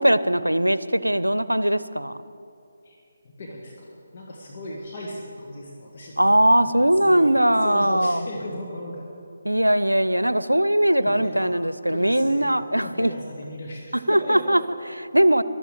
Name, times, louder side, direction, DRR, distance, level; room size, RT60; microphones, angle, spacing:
voice 1, 0.0-2.2 6.2-8.2 9.4-13.1 13.9-15.4, right 1 dB, 90° right, 15 dB, 0.6 m, -20 dB
voice 2, 3.4-7.3 7.6-9.1 11.0-11.5 11.9-12.5 12.8-14.4, left 1 dB, 40° left, -2 dB, 1.8 m, -36 dB
13.0 x 12.0 x 7.7 m, 2.6 s
figure-of-eight pair, 150°, 0 cm